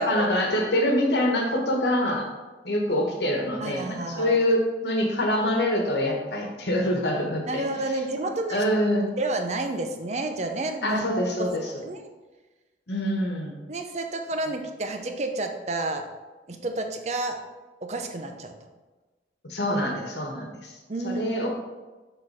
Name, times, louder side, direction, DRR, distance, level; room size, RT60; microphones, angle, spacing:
voice 1, 0.0-2.3 2.6-7.6 8.5-9.1 10.8-11.7 12.9-13.5 19.4-20.7 21.0-21.5, left 1 dB, 75° left, 1 dB, 1.3 m, -25 dB
voice 2, 3.6-4.4 7.5-8.6 9.2-11.1 11.4-12.0 13.7-16.1 16.5-17.4 17.8-18.5 20.9-21.4, right 2 dB, 40° right, 5 dB, 0.6 m, -30 dB
6.7 x 4.2 x 4.9 m, 1.2 s
head